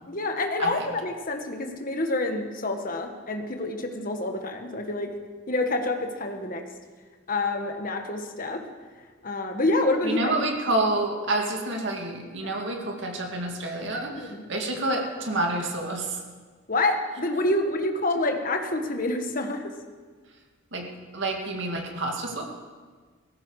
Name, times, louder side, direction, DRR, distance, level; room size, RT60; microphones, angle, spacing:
voice 1, 0.1-5.1 5.5-6.6 7.3-8.6 9.2-10.3 12.4-12.5 14.1-14.4 16.7-19.7, left 2 dB, 45° left, 4 dB, 1.5 m, -27 dB
voice 2, 10.0-16.2 20.7-20.9 21.1-22.4, right 2 dB, 60° right, 2 dB, 2.2 m, -28 dB
18.0 x 15.0 x 4.9 m, 1.5 s
head